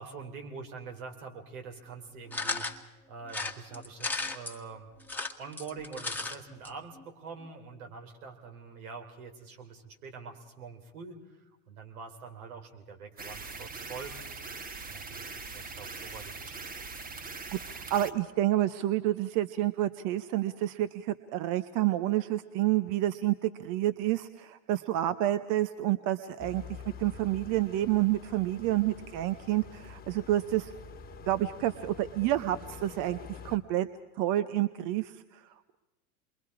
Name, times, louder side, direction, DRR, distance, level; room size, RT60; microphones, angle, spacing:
voice 1, 0.0-2.7 3.1-4.9 5.4-14.1 14.8-16.9, right 5 dB, 75° right, 3 dB, 3.7 m, -45 dB
sound 1, 2.3-2.8 3.3-4.6 5.0-6.4 6.6-6.7 7.0-7.1, left 3 dB, 5° left, 1.5 m, -34 dB
sound 2, 13.2-18.1, right 4 dB, 20° right, 1.2 m, -42 dB
voice 2, 17.5-26.6 27.0-30.7 31.3-33.9 34.2-35.4, right 14 dB, 45° right, 12 dB, 0.9 m, -29 dB
sound 3, 26.4-33.6, left 4 dB, 20° left, 1.5 m, -47 dB
27.5 x 22.5 x 4.8 m, 1.1 s
hypercardioid pair, 95°, 43 cm